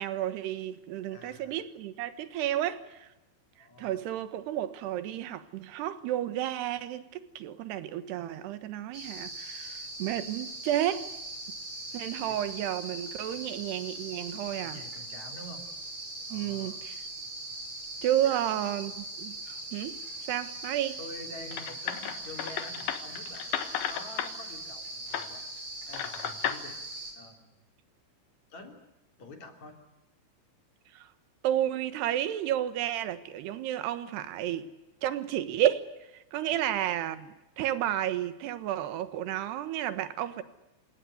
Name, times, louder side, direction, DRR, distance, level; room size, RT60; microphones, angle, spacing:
voice 1, 0.0-3.1 3.6-11.1 11.9-14.8 16.3-17.0 18.0-20.0 20.3-21.0 30.9-31.1 31.4-34.7 35.0-40.4, right 12 dB, 70° right, 3.3 m, -32 dB
voice 2, 1.1-1.6 3.6-4.0 12.3-12.4 13.3-13.5 14.6-15.6 16.3-16.8 18.2-18.4 21.0-23.5 23.9-25.4 25.9-26.8 27.1-27.6 28.5-28.8 29.2-29.8 36.4-36.7, left 2 dB, 40° left, 4.0 m, -47 dB
sound 1, 8.9-27.1, right 2 dB, 35° right, 7.7 m, -41 dB
sound 2, 21.5-24.3 25.1-25.3 25.9-26.6, left 10 dB, 65° left, 3.0 m, -33 dB
28.5 x 18.0 x 9.8 m
omnidirectional pair, 5.4 m